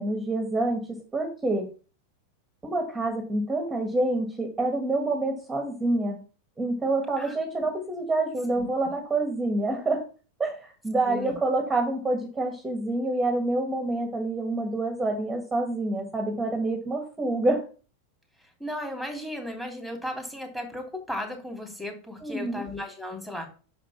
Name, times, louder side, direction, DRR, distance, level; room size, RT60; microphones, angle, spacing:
voice 1, 0.0-1.7 2.6-6.2 6.6-10.0 10.4-17.6 22.2-22.6, right 2 dB, 10° right, 2 dB, 1.7 m, -27 dB
voice 2, 11.0-11.4 18.6-23.5, left 1 dB, 5° left, 2 dB, 3.1 m, -35 dB
6.3 x 5.1 x 5.8 m, 0.38 s
hypercardioid pair, 115°, 0 cm